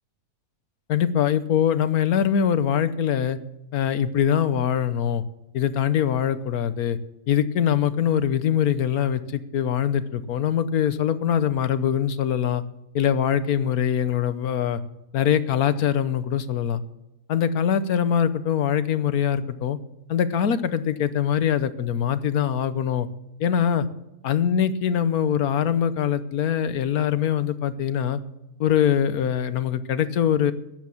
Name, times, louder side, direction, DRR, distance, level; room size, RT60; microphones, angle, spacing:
voice 1, 0.9-3.4 3.7-5.2 5.5-7.0 7.3-12.6 12.9-14.8 15.1-16.8 17.3-19.8 20.1-23.1 23.4-23.9 24.2-28.2 28.6-30.5, left 9 dB, 80° left, 13 dB, 1.4 m, -23 dB
15.0 x 10.5 x 7.1 m, 0.91 s
omnidirectional pair, 1.6 m